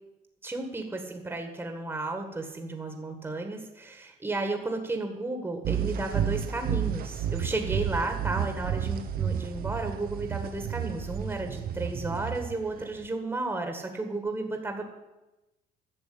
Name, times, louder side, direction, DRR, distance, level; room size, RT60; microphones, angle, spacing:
voice 1, 0.4-14.9, right 2 dB, 15° right, 4 dB, 1.6 m, -33 dB
sound 1, 5.6-13.1, right 8 dB, 60° right, 0.8 m, -31 dB
11.0 x 6.7 x 8.6 m, 1.0 s
cardioid pair, 110°, 17 cm